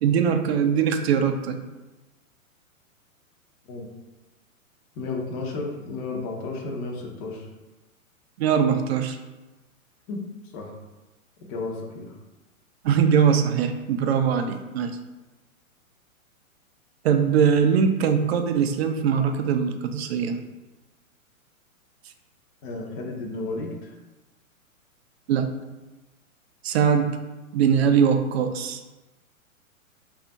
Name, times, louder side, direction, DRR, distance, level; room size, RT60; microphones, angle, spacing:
voice 1, 0.0-1.6 8.4-9.2 12.8-14.9 17.0-20.4 25.3-25.5 26.6-27.2 27.5-28.8, right 7 dB, 50° right, 7 dB, 0.4 m, -21 dB
voice 2, 5.0-7.5 10.1-10.2 10.5-10.7 11.5-12.2 22.6-23.9, left 3 dB, 25° left, -1 dB, 0.6 m, -33 dB
3.2 x 2.4 x 3.9 m, 1.1 s
hypercardioid pair, 120°, 42 cm